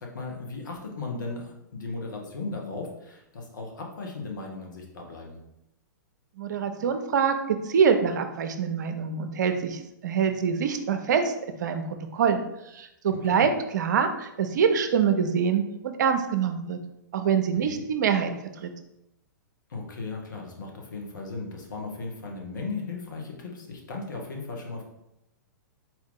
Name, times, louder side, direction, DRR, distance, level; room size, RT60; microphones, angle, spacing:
voice 1, 0.0-5.4 13.1-13.5 17.5-17.8 19.7-24.8, left 3 dB, 70° left, 0 dB, 1.2 m, -36 dB
voice 2, 6.4-11.3 11.6-12.4 12.7-16.8 17.1-18.3 18.6-18.7, right 6 dB, 65° right, 7 dB, 0.5 m, -25 dB
4.3 x 2.6 x 3.8 m, 0.86 s
figure-of-eight pair, 110°, 10 cm